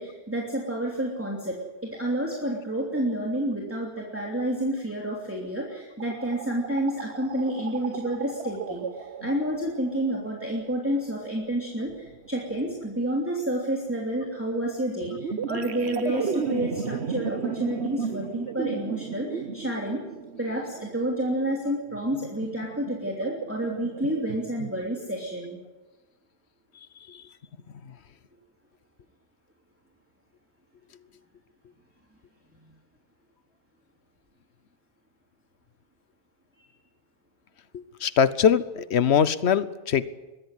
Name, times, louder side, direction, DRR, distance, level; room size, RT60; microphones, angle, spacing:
voice 1, 0.0-1.6 1.8-20.0 20.4-25.6, right 1 dB, 10° right, -2 dB, 3.0 m, -29 dB
sound 1, 6.0-10.4 11.9-13.1 15.0-24.9, right 6 dB, 80° right, 1.2 m, -35 dB
voice 2, 38.0-40.0, left 7 dB, 80° left, 15 dB, 1.2 m, -21 dB
22.0 x 15.0 x 9.9 m, 1.2 s
omnidirectional pair, 1.1 m